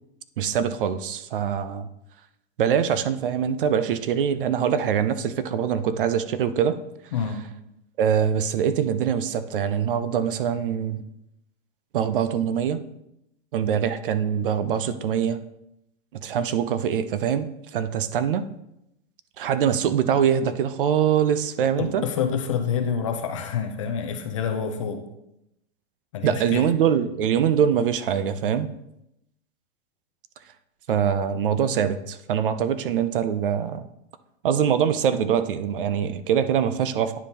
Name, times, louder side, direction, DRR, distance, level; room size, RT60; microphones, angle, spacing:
voice 1, 0.4-1.9 2.6-6.8 8.0-11.0 11.9-12.8 13.5-15.4 16.1-18.4 19.4-22.1 26.2-28.7 30.9-33.9 34.4-37.2, right 8 dB, 55° right, 12 dB, 0.5 m, -23 dB
voice 2, 21.8-25.0 26.1-26.7, left 7 dB, 30° left, 6 dB, 0.5 m, -27 dB
9.5 x 5.2 x 2.8 m, 0.83 s
supercardioid pair, 175°, 33 cm